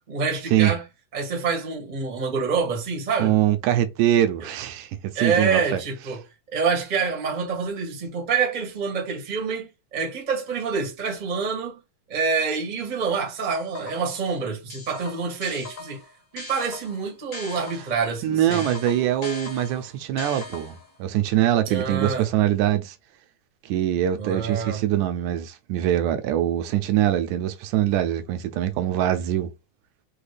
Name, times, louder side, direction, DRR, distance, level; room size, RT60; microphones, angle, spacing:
voice 1, 0.1-0.8 1.1-3.3 5.1-6.2 6.5-11.8 12.1-16.0 16.3-18.6 21.7-22.3 24.2-24.8, right 5 dB, 45° right, 0.5 m, -27 dB
voice 2, 3.2-5.8 18.2-20.7 21.0-23.0 23.6-29.5, right 12 dB, 80° right, 1.9 m, -23 dB
sound 1, 13.5-14.2 14.7-18.0 18.5-21.0, left 3 dB, 40° left, 1.1 m, -39 dB
5.7 x 2.3 x 3.3 m
omnidirectional pair, 3.6 m